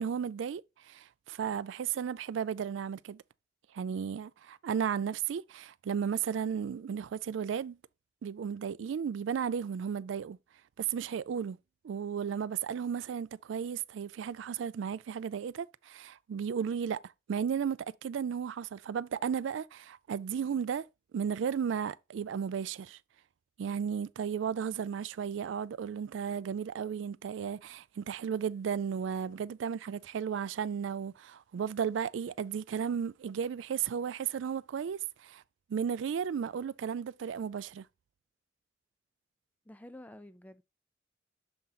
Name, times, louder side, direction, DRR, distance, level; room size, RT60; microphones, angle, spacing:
voice 1, 0.0-3.2 3.7-7.8 8.2-10.4 10.8-11.6 11.8-17.0 17.3-20.9 21.1-23.0 23.6-35.4 35.7-37.9, right 7 dB, 70° right, 0.3 m, -34 dB
voice 2, 39.7-40.6, left 1 dB, 10° left, 0.4 m, -49 dB
6.8 x 3.8 x 4.0 m
head